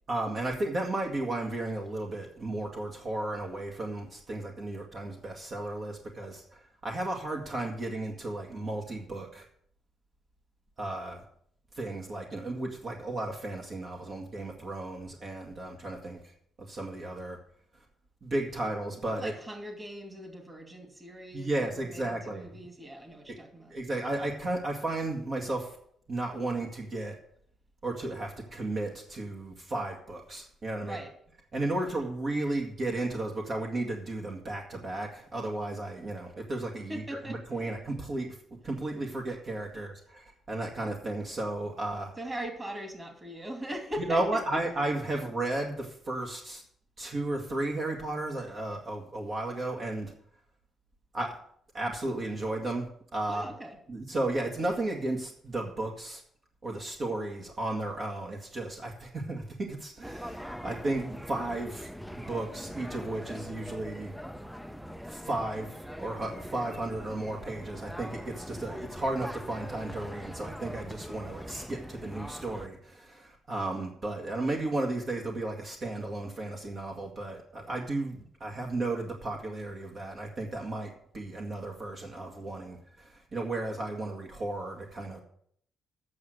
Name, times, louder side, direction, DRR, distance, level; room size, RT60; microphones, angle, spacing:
voice 1, 0.1-9.5 10.8-11.2 11.7-16.2 16.7-17.4 18.2-19.3 21.3-22.5 23.7-25.8 26.1-27.2 27.8-31.0 31.5-38.3 38.6-42.1 44.1-46.6 47.0-50.1 51.1-51.4 51.7-53.4 53.9-56.2 56.6-61.9 62.1-64.1 65.1-85.2, right 2 dB, 45° right, 1 dB, 1.9 m, -34 dB
voice 2, 19.2-23.7 30.8-31.1 31.7-32.0 36.9-37.7 39.7-39.8 42.2-44.4 53.3-53.8, equal, 20° right, 4 dB, 2.5 m, -40 dB
sound 1, 60.0-72.7, equal, ahead, 0.5 m, -42 dB
8.6 x 6.5 x 8.0 m, 0.64 s
cardioid pair, 90°, 0 cm